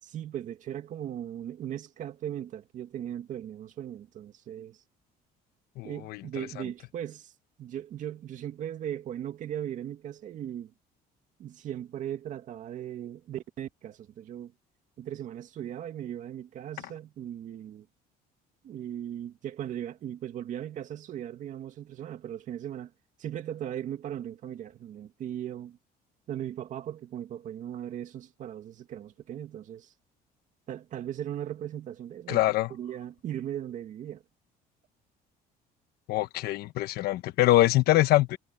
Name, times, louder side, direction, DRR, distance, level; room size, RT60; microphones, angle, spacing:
voice 1, 0.0-4.8 5.8-7.3 7.6-10.7 11.4-14.5 15.0-17.9 18.6-22.9 23.2-25.8 26.3-29.9 30.7-32.4 32.7-34.2, right 10 dB, 50° right, 2.2 m, -38 dB
voice 2, 5.8-6.6 32.3-32.7 36.1-38.4, left 16 dB, 70° left, 1.1 m, -24 dB
cardioid pair, 150°, 16 cm